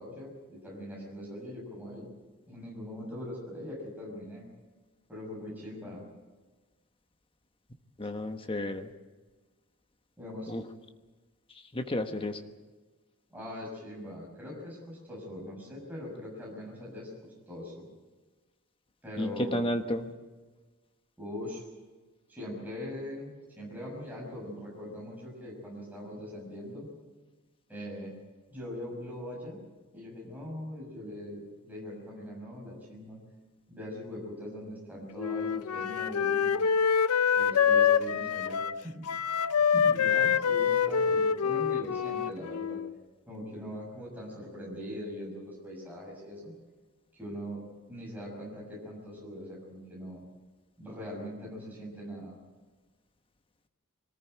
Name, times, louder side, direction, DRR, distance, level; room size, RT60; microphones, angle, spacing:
voice 1, 0.0-2.1 2.5-4.5 5.1-6.0 10.2-10.5 13.3-17.9 19.0-19.6 21.2-21.6 22.3-26.9 27.7-28.1 28.5-29.6 29.9-33.2 33.7-36.7 37.4-39.3 39.6-42.8 43.3-46.5 47.1-47.6 47.9-50.2 50.8-52.4, left 1 dB, 10° right, -4 dB, 6.2 m, -41 dB
voice 2, 8.0-8.9 10.5-10.6 11.7-12.4 19.2-20.1, left 1 dB, 25° left, 6 dB, 1.2 m, -32 dB
Wind instrument woodwind instrument, 35.2-42.9, left 7 dB, 90° left, 0.6 m, -26 dB
23.5 x 14.5 x 9.3 m, 1.3 s
head